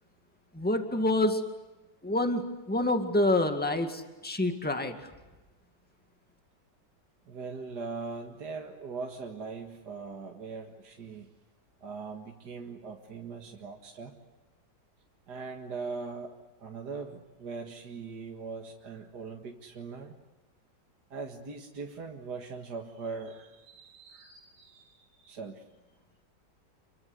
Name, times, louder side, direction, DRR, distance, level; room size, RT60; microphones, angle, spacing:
voice 1, 0.5-1.4 2.0-5.0, left 1 dB, 5° left, 6 dB, 2.0 m, -27 dB
voice 2, 7.3-11.3 11.8-14.2 15.3-20.2 21.1-25.6, right 4 dB, 65° right, 1 dB, 2.4 m, -41 dB
29.0 x 24.0 x 8.1 m, 1.1 s
omnidirectional pair, 1.9 m